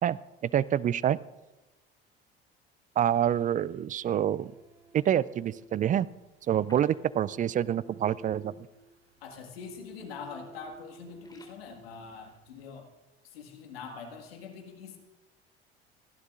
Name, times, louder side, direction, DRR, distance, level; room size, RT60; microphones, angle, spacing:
voice 1, 0.0-1.2 3.0-4.5 4.9-6.1 6.5-8.5, right 10 dB, 25° right, 21 dB, 0.4 m, -27 dB
sound 1, 3.3-12.6, right 4 dB, 90° right, 1.0 m, -54 dB
sound 2, 6.4-7.7 7.9-8.1 8.4-8.5 9.1-9.4 9.7-10.0 10.4-11.6, left 1 dB, 15° left, 4.1 m, -59 dB
voice 2, 9.2-12.9 13.2-15.0, left 5 dB, 80° left, 3 dB, 1.9 m, -44 dB
28.5 x 11.5 x 2.5 m, 1.1 s
hypercardioid pair, 65°, 30 cm